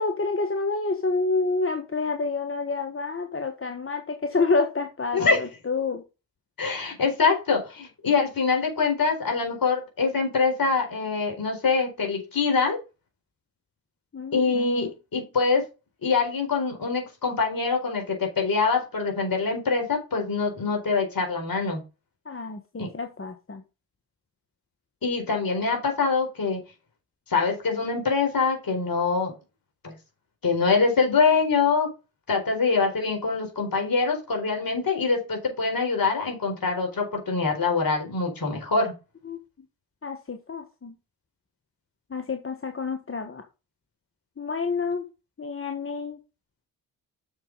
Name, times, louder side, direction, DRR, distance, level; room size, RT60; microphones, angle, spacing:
voice 1, 0.0-6.0 14.1-14.9 22.2-23.6 39.2-39.4 40.0-40.9 42.1-43.4 44.4-45.0 45.4-46.2, left 3 dB, 30° left, 6 dB, 1.4 m, -28 dB
voice 2, 6.6-12.8 14.3-15.6 16.0-21.8 22.8-22.9 25.0-26.6 27.3-29.3 29.8-29.9 30.4-31.9 32.3-38.9, left 4 dB, 50° left, 2 dB, 4.4 m, -24 dB
7.3 x 6.7 x 4.0 m, 0.29 s
hypercardioid pair, 45°, 45 cm